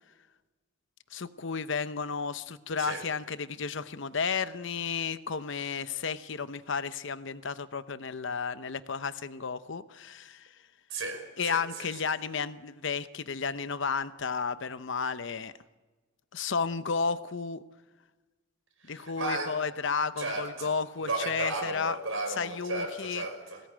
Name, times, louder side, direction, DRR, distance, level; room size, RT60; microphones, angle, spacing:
voice 1, 1.1-10.5 11.4-15.5 16.3-17.6 18.9-22.0 22.4-23.3, left 5 dB, 65° left, 13 dB, 0.8 m, -32 dB
voice 2, 10.9-11.9 18.8-19.5 20.2-20.7 21.1-23.6, right 2 dB, 85° right, 4 dB, 5.2 m, -34 dB
21.5 x 17.5 x 8.8 m, 1.2 s
head